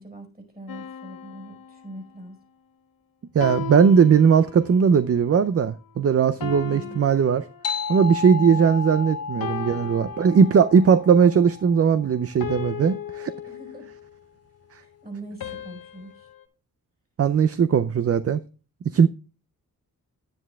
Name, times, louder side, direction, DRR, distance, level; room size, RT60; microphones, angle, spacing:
voice 1, 0.0-2.4 6.4-7.0 8.3-8.7 13.4-13.9 14.8-16.3, right 1 dB, 25° right, 4.9 m, -42 dB
sound 1, 0.7-2.3 3.4-4.9 6.4-8.1 9.4-10.9 12.4-14.1 15.4-16.4, left 9 dB, 70° left, 1.0 m, -37 dB
voice 2, 3.3-7.5 7.9-13.3 17.2-18.4 18.9-19.1, right 6 dB, 40° right, 0.5 m, -19 dB
sound 2, 7.6-12.6, left 6 dB, 45° left, 0.5 m, -33 dB
10.0 x 9.7 x 2.3 m
cardioid pair, 70°, 36 cm